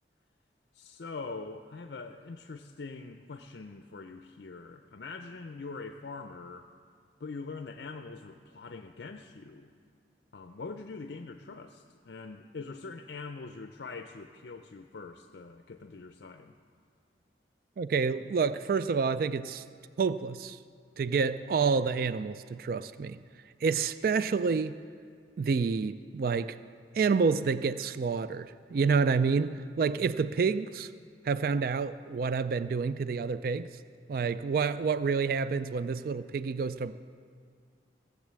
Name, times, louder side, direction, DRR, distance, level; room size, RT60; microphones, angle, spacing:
voice 1, 0.7-6.7 7.2-9.7 10.3-16.6, left 4 dB, 70° left, 7 dB, 0.5 m, -43 dB
voice 2, 17.8-19.6 20.0-20.6 21.0-23.2 23.6-24.7 25.4-26.6 26.9-30.9 31.2-33.7 34.1-36.9, right 5 dB, 55° right, 14 dB, 0.3 m, -28 dB
17.0 x 7.4 x 7.5 m, 2.2 s
head